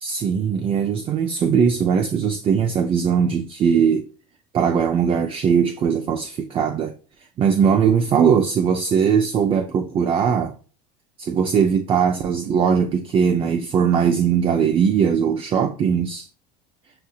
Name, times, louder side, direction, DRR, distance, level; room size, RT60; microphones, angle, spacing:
voice 1, 0.0-4.1 4.5-6.9 7.4-10.5 11.2-16.3, right 7 dB, 35° right, 0.5 m, -20 dB
7.6 x 2.6 x 2.3 m
supercardioid pair, 115°, 16 cm